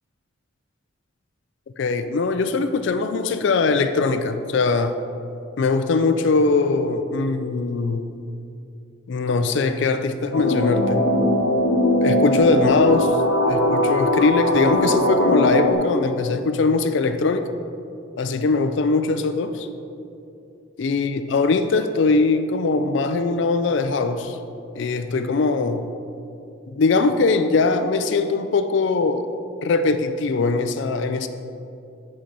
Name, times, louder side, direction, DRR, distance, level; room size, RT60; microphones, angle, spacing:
voice 1, 1.8-5.0 5.6-8.1 9.1-11.0 12.0-13.2 13.5-17.5 18.2-19.7 20.8-24.4 24.8-25.9 26.7-29.3 29.6-31.3, left 3 dB, 60° left, 9 dB, 0.4 m, -21 dB
sound 1, 10.3-15.7, left 1 dB, 85° left, 1.0 m, -20 dB
10.0 x 4.4 x 5.2 m, 2.7 s
head